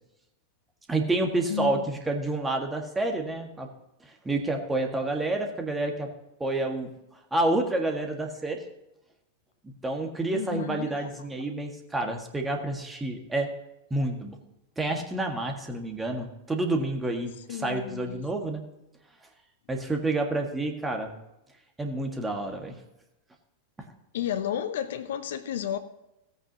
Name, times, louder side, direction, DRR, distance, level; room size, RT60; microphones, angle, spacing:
voice 1, 0.9-3.7 4.2-6.1 6.4-6.9 7.3-8.6 9.6-13.5 13.9-14.4 14.8-18.6 19.7-21.1 21.8-22.7, right 2 dB, 10° right, 1.8 m, -29 dB
voice 2, 1.5-1.9 10.3-11.1 17.4-18.3 24.1-25.8, left 9 dB, 60° left, 0.6 m, -32 dB
16.5 x 8.9 x 2.9 m
figure-of-eight pair, 90°, 0 cm